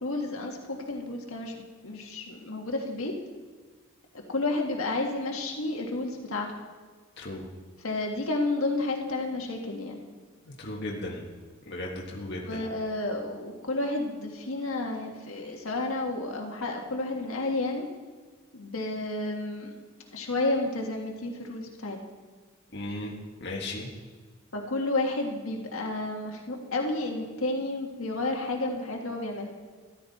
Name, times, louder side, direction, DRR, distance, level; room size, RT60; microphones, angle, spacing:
voice 1, 0.0-1.6 1.8-3.1 4.3-6.5 7.8-10.0 12.5-17.9 18.5-19.7 20.1-22.0 24.5-29.5, left 2 dB, 75° left, 1 dB, 1.6 m, -31 dB
voice 2, 7.2-7.5 10.4-11.2 11.7-12.7 22.7-23.1 23.4-23.9, left 1 dB, 50° left, -1 dB, 1.5 m, -36 dB
13.5 x 12.0 x 4.2 m, 1.4 s
head